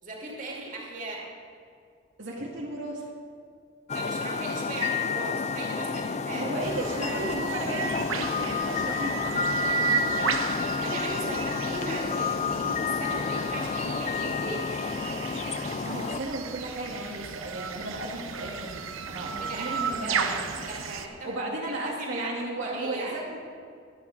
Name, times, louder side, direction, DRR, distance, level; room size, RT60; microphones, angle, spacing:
voice 1, 0.0-1.2 3.9-6.5 10.8-14.6 19.2-21.3 21.6-23.2, right 2 dB, 40° right, -3 dB, 2.6 m, -38 dB
voice 2, 2.2-3.1 6.3-9.3 15.8-20.5 21.2-23.4, right 1 dB, 70° right, -4 dB, 2.0 m, -34 dB
sound 1, 3.9-16.2, left 5 dB, 35° left, 0.3 m, -30 dB
sound 2, 6.6-21.1, right 6 dB, 90° right, 0.9 m, -34 dB
23.5 x 8.6 x 4.0 m, 2.3 s
head